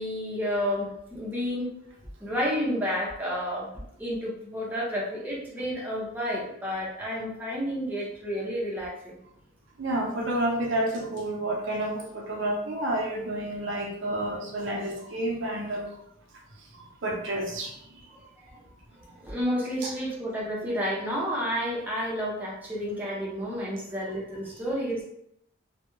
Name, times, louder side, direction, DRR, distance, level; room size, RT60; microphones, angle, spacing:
voice 1, 0.0-1.7 2.2-3.7 4.0-9.2 19.2-25.0, equal, 10° right, -5 dB, 0.5 m, -30 dB
voice 2, 9.8-15.9 17.0-17.7 19.8-19.9, right 1 dB, 75° right, -1 dB, 0.6 m, -29 dB
2.2 x 2.0 x 2.9 m, 0.74 s
head